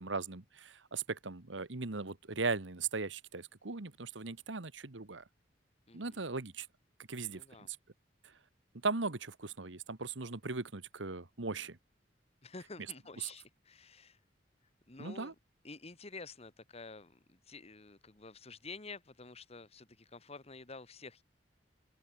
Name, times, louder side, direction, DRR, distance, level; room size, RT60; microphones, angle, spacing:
voice 1, 0.0-5.2 5.9-6.7 7.1-7.4 7.7-7.8 8.8-11.8 15.0-15.3, right 4 dB, 90° right, 1.5 m, -38 dB
voice 2, 5.9-6.2 7.3-7.7 12.4-14.2 14.9-15.3 15.6-21.2, left 3 dB, 35° left, 1.6 m, -50 dB
head